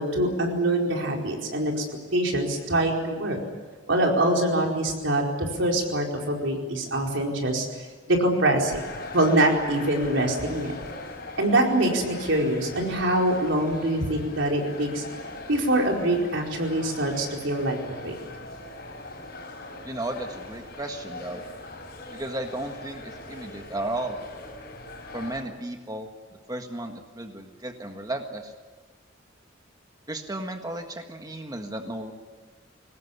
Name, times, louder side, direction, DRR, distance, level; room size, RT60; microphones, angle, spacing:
voice 1, 0.0-1.7 2.1-3.4 3.9-5.2 5.6-7.7 8.1-8.8 9.1-10.7 11.4-15.0 15.5-17.8 18.0-18.1, right 1 dB, 75° right, 0 dB, 4.7 m, -24 dB
sound 1, 8.6-25.4, left 2 dB, 50° left, 6.1 m, -41 dB
voice 2, 19.8-21.4 22.1-24.2 25.1-26.1 26.5-28.5 30.1-32.1, right 1 dB, 20° right, 4 dB, 1.6 m, -34 dB
23.0 x 19.0 x 9.8 m, 1.3 s
head